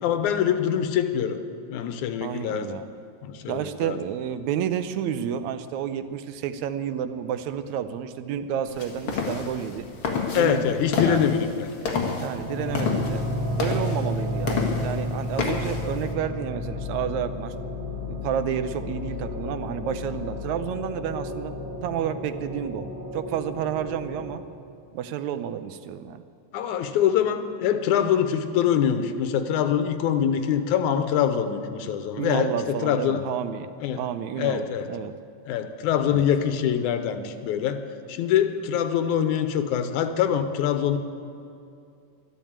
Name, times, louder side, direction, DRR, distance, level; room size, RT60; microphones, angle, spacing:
voice 1, 0.0-1.4 1.7-2.7 3.2-4.0 10.3-11.7 26.5-33.2 33.8-34.0 34.4-34.9 35.5-37.8 38.1-41.0, left 9 dB, 90° left, 9 dB, 2.3 m, -24 dB
voice 2, 2.2-2.9 3.5-9.9 10.3-11.2 12.2-17.5 18.1-21.5 21.8-22.9 23.1-24.4 24.9-26.2 32.2-33.7 34.0-35.2 36.1-36.3, right 9 dB, 80° right, 11 dB, 2.0 m, -30 dB
sound 1, 8.7-16.1, left 5 dB, 50° left, 2.4 m, -30 dB
sound 2, 12.4-24.4, left 1 dB, 10° right, 1.0 m, -32 dB
12.0 x 12.0 x 8.7 m, 2.5 s
omnidirectional pair, 3.4 m